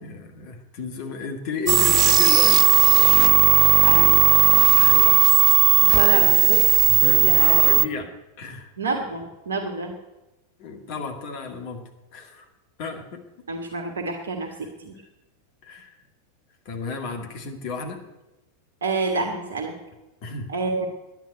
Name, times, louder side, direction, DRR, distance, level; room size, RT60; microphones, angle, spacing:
voice 1, 0.0-2.7 4.7-5.2 5.9-6.5 6.9-8.7 10.6-12.5 12.8-13.2 14.4-14.5 15.6-16.0 16.7-18.1 20.2-20.5, left 4 dB, 45° left, 4 dB, 2.2 m, -33 dB
sound 1, 1.7-7.9, right 13 dB, 35° right, 0.5 m, -16 dB
voice 2, 5.8-6.6 7.2-7.5 8.8-9.9 13.5-14.9 18.8-19.7 20.5-20.9, right 3 dB, 70° right, 4 dB, 1.6 m, -28 dB
10.5 x 9.5 x 8.9 m, 1.0 s
figure-of-eight pair, 90°, 0 cm